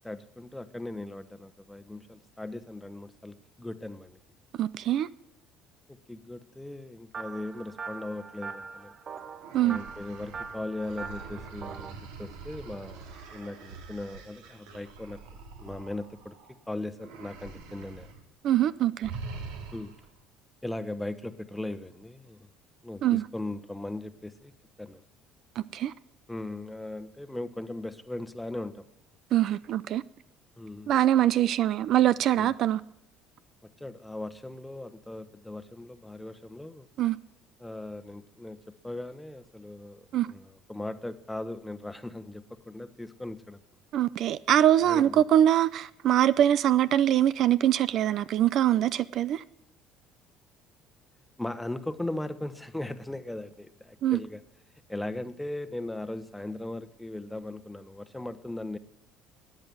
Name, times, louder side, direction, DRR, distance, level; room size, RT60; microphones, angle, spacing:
voice 1, 0.0-4.2 6.1-8.9 9.6-15.2 15.6-16.4 16.7-18.1 19.7-20.0 20.6-22.5 22.8-24.5 24.8-25.0 26.3-28.9 30.6-30.9 32.3-32.5 33.6-36.9 37.6-43.6 44.8-45.2 51.4-54.4 54.9-58.8, left 1 dB, 5° left, 1.1 m, -38 dB
voice 2, 4.6-5.1 9.5-9.8 18.4-19.1 23.0-23.2 25.6-25.9 29.3-30.0 30.9-32.8 37.0-37.2 40.1-40.3 43.9-49.4 54.0-54.2, right 11 dB, 60° right, 0.5 m, -23 dB
sound 1, 7.1-11.9, right 5 dB, 35° right, 1.1 m, -42 dB
sound 2, 9.4-16.6 17.0-18.2 18.5-18.7 19.0-20.1, right 4 dB, 90° right, 2.5 m, -44 dB
13.5 x 9.0 x 9.3 m
supercardioid pair, 100°, 0 cm